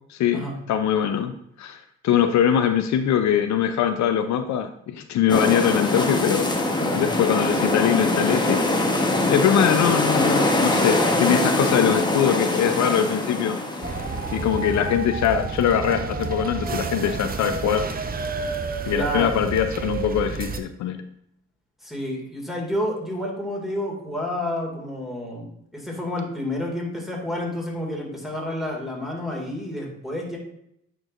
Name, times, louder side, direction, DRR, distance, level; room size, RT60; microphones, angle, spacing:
voice 1, 0.1-6.5 6.9-8.6 9.3-13.6 14.3-17.9 18.8-21.0, left 9 dB, 65° left, 7 dB, 0.5 m, -22 dB
sound 1, 5.3-15.1, left 2 dB, 15° left, 1.0 m, -23 dB
sound 2, 13.8-20.6, right 4 dB, 30° right, 0.6 m, -30 dB
voice 2, 18.9-19.4 21.8-30.4, left 1 dB, ahead, -2 dB, 2.0 m, -30 dB
8.9 x 4.6 x 2.5 m, 0.74 s
cardioid pair, 90°, 30 cm